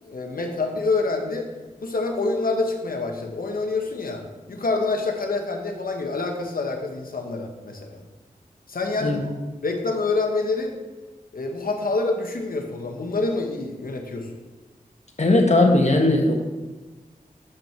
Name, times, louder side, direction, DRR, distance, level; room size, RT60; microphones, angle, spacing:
voice 1, 0.0-1.5 1.8-8.0 8.7-9.2 9.6-10.8 11.3-14.3, left 3 dB, 80° left, 3 dB, 1.1 m, -26 dB
voice 2, 15.2-16.3, left 2 dB, 50° left, 1 dB, 1.3 m, -18 dB
7.6 x 5.4 x 4.5 m, 1.2 s
wide cardioid pair, 70°, 15 cm